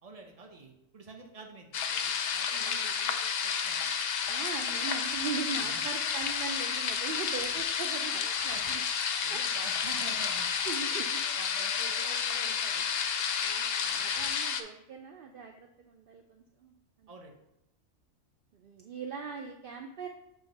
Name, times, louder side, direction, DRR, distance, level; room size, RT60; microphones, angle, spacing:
voice 1, 0.0-3.9 5.6-5.8 8.5-8.8 9.2-10.5 11.4-12.9 13.8-14.1 17.1-17.3, right 3 dB, 35° right, 2 dB, 0.8 m, -48 dB
sound 1, 1.7-14.6, left 7 dB, 60° left, 0.7 m, -31 dB
voice 2, 2.5-2.9 4.3-8.3 8.7-8.8 9.3-9.6 10.7-11.2 13.4-16.7 17.0-17.1 18.5-20.1, right 5 dB, 60° right, 4 dB, 0.6 m, -40 dB
7.7 x 3.1 x 5.1 m, 0.86 s
omnidirectional pair, 1.4 m